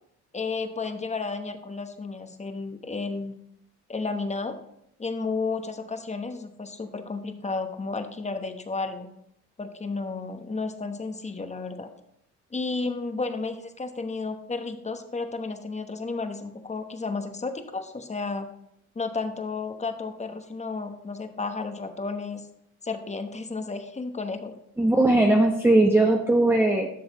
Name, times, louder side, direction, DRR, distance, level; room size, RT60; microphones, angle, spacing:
voice 1, 0.3-3.3 3.9-4.6 5.0-9.1 9.6-11.9 12.5-18.5 18.9-22.4 22.8-24.5, left 4 dB, 20° left, 7 dB, 1.0 m, -32 dB
voice 2, 24.8-26.9, right 2 dB, 5° right, 1 dB, 0.9 m, -19 dB
12.0 x 6.4 x 3.0 m, 0.76 s
cardioid pair, 90°, 30 cm